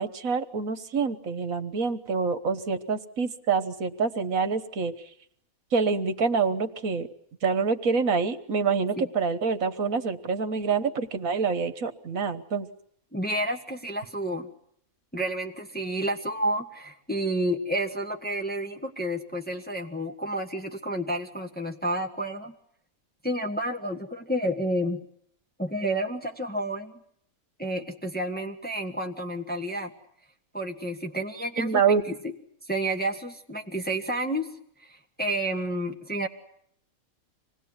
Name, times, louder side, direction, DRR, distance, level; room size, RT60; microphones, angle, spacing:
voice 1, 0.0-4.9 5.7-7.1 7.4-12.7 31.6-32.0, right 5 dB, 70° right, 9 dB, 1.7 m, -26 dB
voice 2, 13.1-14.5 15.1-22.5 23.2-25.0 25.6-27.0 27.6-29.9 30.5-32.3 32.6-34.5 34.8-36.3, right 1 dB, 5° left, 3 dB, 1.5 m, -30 dB
26.0 x 19.0 x 9.7 m, 0.70 s
omnidirectional pair, 1.5 m